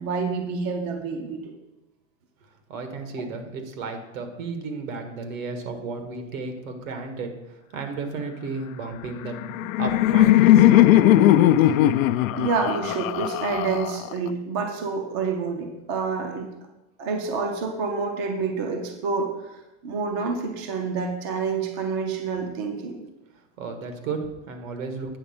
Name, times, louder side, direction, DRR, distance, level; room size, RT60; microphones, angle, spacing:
voice 1, 0.0-1.5 12.4-16.5 17.0-19.3 19.8-23.0, right 4 dB, 20° right, 4 dB, 0.4 m, -28 dB
voice 2, 2.7-10.9 23.6-25.2, right 4 dB, 80° right, 6 dB, 1.7 m, -33 dB
Laughter, 9.2-14.3, left 13 dB, 85° left, 0.5 m, -18 dB
8.7 x 4.3 x 7.1 m, 0.99 s
supercardioid pair, 175°, 39 cm